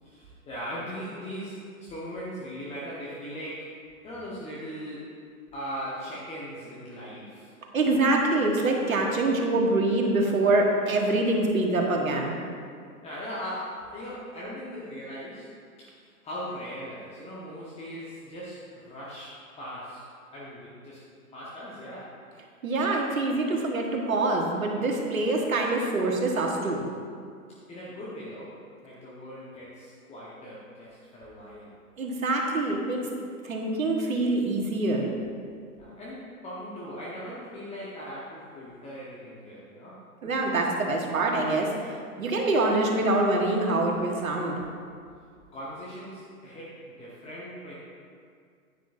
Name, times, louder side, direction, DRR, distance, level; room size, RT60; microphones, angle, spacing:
voice 1, 0.0-5.2 5.5-7.5 13.0-15.5 15.8-20.1 20.3-21.0 21.3-22.2 27.7-28.6 28.8-31.7 35.7-40.0 45.5-47.7, equal, 15° left, -8 dB, 1.2 m, -39 dB
voice 2, 7.7-12.3 22.6-26.8 32.0-35.1 40.2-44.5, right 2 dB, 70° right, 1 dB, 1.6 m, -25 dB
10.0 x 9.4 x 2.7 m, 2.2 s
figure-of-eight pair, 110°, 43 cm